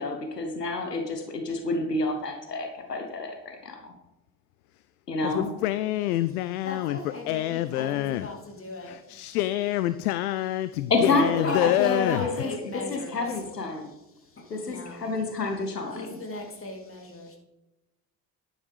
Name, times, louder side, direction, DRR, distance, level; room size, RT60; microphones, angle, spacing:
voice 1, 0.0-3.9 5.1-5.5 10.9-13.9 14.5-16.1, left 3 dB, 85° left, 4 dB, 1.0 m, -29 dB
voice 2, 5.2-8.3 8.8-12.3, left 14 dB, 65° left, 14 dB, 0.5 m, -27 dB
voice 3, 6.6-9.2 11.2-13.3 13.7-15.0 15.8-17.4, left 2 dB, 25° left, 1 dB, 3.1 m, -37 dB
11.5 x 10.0 x 3.3 m, 0.95 s
figure-of-eight pair, 50°, 47 cm